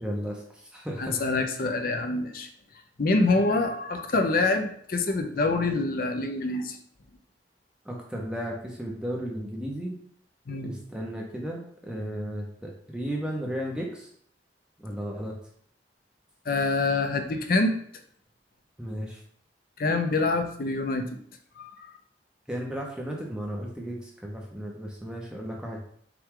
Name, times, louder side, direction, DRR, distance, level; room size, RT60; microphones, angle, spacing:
voice 1, 0.0-1.2 7.8-10.0 10.6-14.1 14.8-15.3 18.8-19.2 22.5-25.8, equal, 5° right, -1 dB, 0.6 m, -34 dB
voice 2, 1.0-2.5 3.0-6.8 10.5-10.7 16.5-17.8 19.8-21.2 21.6-21.9, left 3 dB, 55° left, 6 dB, 0.5 m, -26 dB
5.7 x 2.3 x 3.7 m, 0.62 s
head